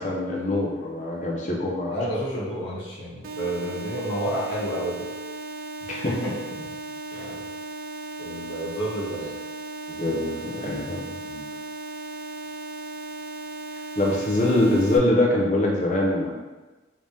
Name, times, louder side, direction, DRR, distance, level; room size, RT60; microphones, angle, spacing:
voice 1, 0.0-2.0 5.9-6.1 7.1-7.2 9.9-11.5 14.0-16.3, left 1 dB, 40° left, -1 dB, 0.6 m, -24 dB
voice 2, 1.9-5.1 6.0-6.8 7.1-7.4 8.2-9.3, right 1 dB, 80° left, -8 dB, 1.3 m, -30 dB
sound 1, 3.2-15.0, right 2 dB, 50° right, 0.3 m, -36 dB
3.4 x 3.2 x 2.8 m, 1.2 s
head